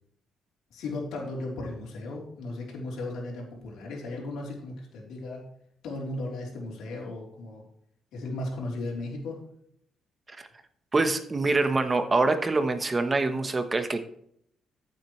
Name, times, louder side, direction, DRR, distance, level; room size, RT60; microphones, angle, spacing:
voice 1, 0.7-5.5 5.8-7.6 8.1-9.4, left 2 dB, 80° left, -1 dB, 3.6 m, -36 dB
voice 2, 10.9-14.0, right 3 dB, 25° right, 9 dB, 1.1 m, -25 dB
14.0 x 7.4 x 3.2 m, 0.68 s
cardioid pair, 90°, 0 cm